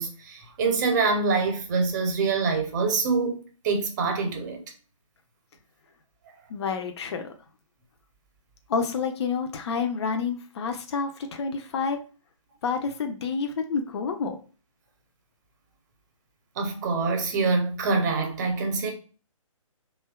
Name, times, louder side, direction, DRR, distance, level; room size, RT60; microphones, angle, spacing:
voice 1, 0.0-4.6 16.6-18.9, right 4 dB, 35° right, 0.6 m, -25 dB
voice 2, 6.5-7.3 8.7-12.0 12.6-14.4, left 5 dB, 50° left, 0.4 m, -29 dB
2.6 x 2.2 x 2.2 m
figure-of-eight pair, 135°, 18 cm